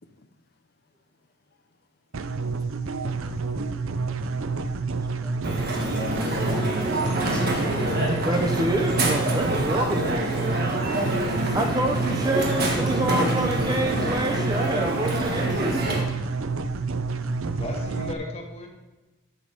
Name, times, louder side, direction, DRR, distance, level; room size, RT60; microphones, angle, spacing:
sound 1, 2.1-18.1, right 4 dB, 70° right, 0.6 m, -29 dB
voice 1, 3.8-4.3, left 2 dB, 50° left, 8 dB, 0.7 m, -57 dB
Crowd, 5.4-16.0, right 1 dB, 45° right, 1.6 m, -27 dB
voice 2, 5.7-8.5, left 1 dB, 5° left, -1 dB, 1.4 m, -33 dB
voice 3, 8.2-10.6 11.5-15.9, right 1 dB, 20° right, 3 dB, 0.7 m, -27 dB
voice 4, 12.6-13.3 17.5-18.7, left 1 dB, 30° left, 0 dB, 1.6 m, -37 dB
12.5 x 6.4 x 3.5 m, 1.1 s
head